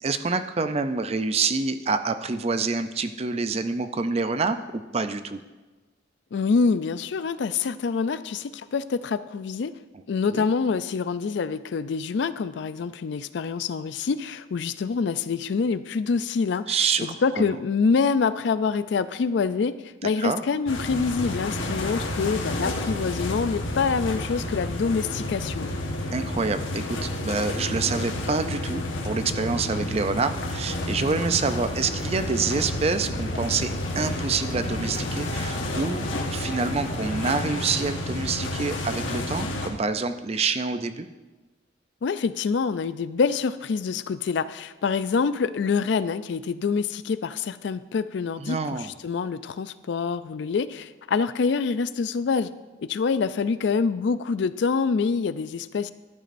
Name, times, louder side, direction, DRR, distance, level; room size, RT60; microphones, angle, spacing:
voice 1, 0.0-5.4 10.3-10.4 16.7-17.6 20.0-20.4 26.1-41.1 48.4-48.9, right 4 dB, 30° right, 10 dB, 0.4 m, -27 dB
voice 2, 6.3-9.7 10.1-19.8 20.0-25.8 42.0-52.5 52.8-55.9, left 5 dB, 60° left, 14 dB, 0.4 m, -26 dB
sound 1, 20.7-39.7, left 1 dB, 80° left, 1.3 m, -30 dB
sound 2, 31.4-37.9, left 1 dB, 35° left, 1.2 m, -41 dB
12.0 x 10.5 x 2.6 m, 1.2 s
head